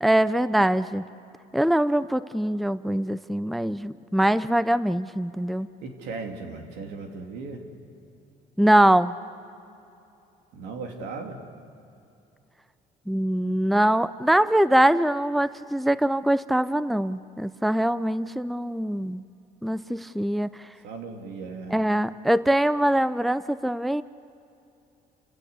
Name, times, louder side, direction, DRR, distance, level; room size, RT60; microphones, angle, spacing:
voice 1, 0.0-1.0 1.5-5.7 8.6-9.1 13.1-19.2 19.6-20.5 21.7-24.0, right 1 dB, ahead, 15 dB, 0.5 m, -23 dB
voice 2, 5.8-7.6 10.5-11.4 20.8-21.8, right 4 dB, 85° right, 3 dB, 3.1 m, -37 dB
29.5 x 16.5 x 8.3 m, 2.7 s
cardioid pair, 110°, 17 cm